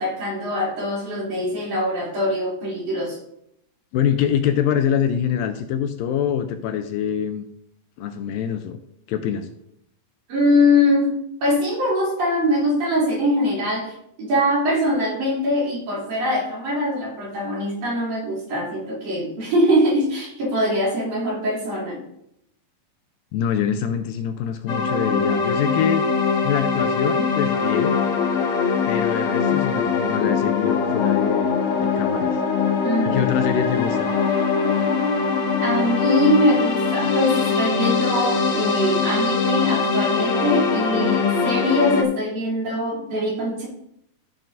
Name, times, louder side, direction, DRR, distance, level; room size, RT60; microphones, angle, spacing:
voice 1, 0.0-3.2 10.3-22.0 32.8-33.2 35.6-43.7, left 1 dB, 55° right, -5 dB, 4.3 m, -22 dB
voice 2, 3.9-7.5 8.0-8.8 9.1-9.5 23.3-26.0 26.4-28.0 28.9-32.4 33.0-34.1, left 8 dB, 80° left, 7 dB, 2.2 m, -24 dB
sound 1, 24.7-42.0, left 5 dB, 65° left, 1.4 m, -22 dB
14.0 x 7.5 x 2.6 m, 0.75 s
omnidirectional pair, 4.2 m